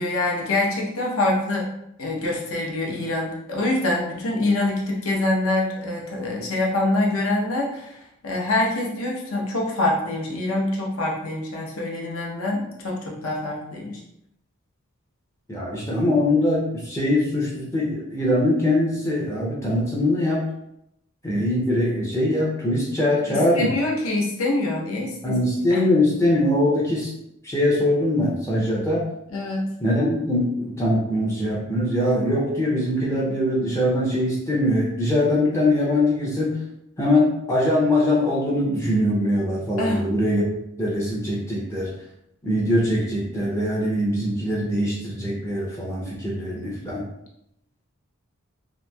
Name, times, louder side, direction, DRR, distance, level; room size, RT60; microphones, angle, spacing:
voice 1, 0.0-1.7 2.0-14.0 23.3-25.4 25.7-25.9 29.3-29.7 39.8-40.0, left 2 dB, 70° left, -2 dB, 0.7 m, -25 dB
voice 2, 15.5-20.4 21.2-23.7 25.2-27.1 27.4-29.0 29.8-36.6 37.0-40.4 40.8-41.9 42.4-47.1, left 1 dB, 10° left, -5 dB, 0.4 m, -22 dB
2.9 x 2.6 x 2.2 m, 0.81 s
head